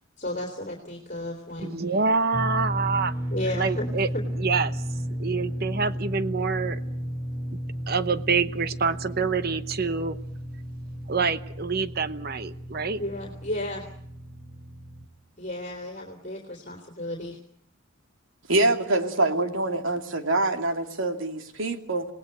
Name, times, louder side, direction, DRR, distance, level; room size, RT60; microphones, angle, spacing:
voice 1, 0.2-1.8 3.3-3.9 4.1-4.2 13.0-13.8 15.4-17.4, left 1 dB, 40° left, 1 dB, 3.2 m, -33 dB
voice 2, 1.6-3.1 3.6-4.1 4.4-4.8 5.2-6.8 7.9-10.2 11.1-13.0, right 4 dB, 50° right, 12 dB, 0.9 m, -26 dB
sound 1, 2.3-15.1, equal, 10° right, 4.0 m, -33 dB
voice 3, 18.5-22.1, right 2 dB, 75° right, 6 dB, 2.7 m, -25 dB
28.0 x 19.0 x 7.9 m, 0.71 s
head